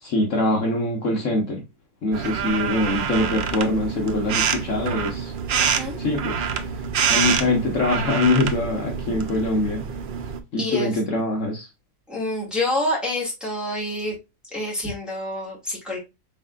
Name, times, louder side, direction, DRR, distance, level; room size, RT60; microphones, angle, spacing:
voice 1, 0.0-1.6 2.0-5.3 6.0-6.4 7.1-9.9 10.5-11.7, left 2 dB, 60° left, 1.3 m, -23 dB
sound 1, 2.1-10.4, right 7 dB, 75° right, 0.4 m, -26 dB
voice 2, 5.6-6.0 10.6-11.0 12.1-14.2 14.5-16.0, left 1 dB, ahead, 1.9 m, -27 dB
4.7 x 3.5 x 2.3 m
omnidirectional pair, 1.5 m